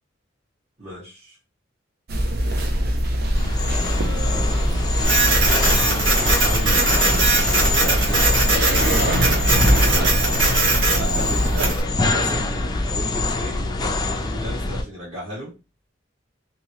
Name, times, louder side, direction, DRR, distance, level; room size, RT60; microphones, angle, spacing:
voice 1, 0.8-1.4 3.8-4.9 6.4-6.8 7.8-8.2 8.7-10.3 11.0-15.5, equal, 35° right, -8 dB, 1.4 m, -35 dB
sound 1, 2.1-11.7, right 1 dB, 55° right, 0.6 m, -23 dB
sound 2, 3.4-14.8, left 2 dB, 20° left, 0.4 m, -24 dB
Printer, 5.0-11.8, right 3 dB, 75° right, 1.1 m, -21 dB
3.0 x 2.7 x 2.8 m, 0.29 s
head